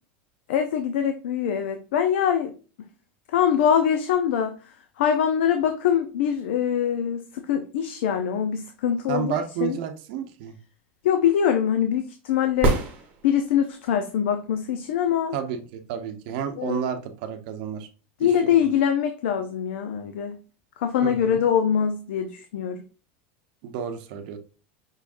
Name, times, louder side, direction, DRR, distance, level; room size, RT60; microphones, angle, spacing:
voice 1, 0.5-2.5 3.3-4.6 5.0-9.8 11.0-12.8 13.2-15.4 16.6-16.8 18.2-20.4 20.8-22.8, left 8 dB, 85° left, 0.6 m, -23 dB
voice 2, 9.1-10.6 15.3-17.9 18.2-18.7 21.0-21.4 23.6-24.4, right 8 dB, 50° right, 0.8 m, -31 dB
sound 1, 12.5-13.7 17.6-17.7, right 3 dB, 25° right, 1.0 m, -25 dB
5.6 x 3.6 x 2.5 m
supercardioid pair, 180°, 6 cm